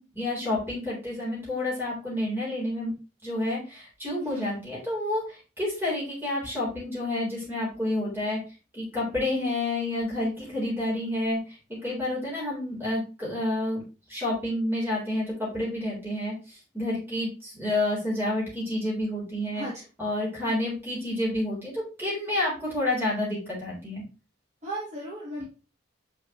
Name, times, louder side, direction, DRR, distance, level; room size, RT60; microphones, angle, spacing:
voice 1, 0.0-2.9 3.2-8.4 8.7-13.8 14.1-19.7 20.0-24.0, left 1 dB, 10° right, -6 dB, 3.7 m, -29 dB
voice 2, 4.2-4.5 19.5-19.7 24.6-25.4, equal, 35° right, -4 dB, 1.5 m, -35 dB
6.1 x 5.6 x 3.0 m, 0.33 s
head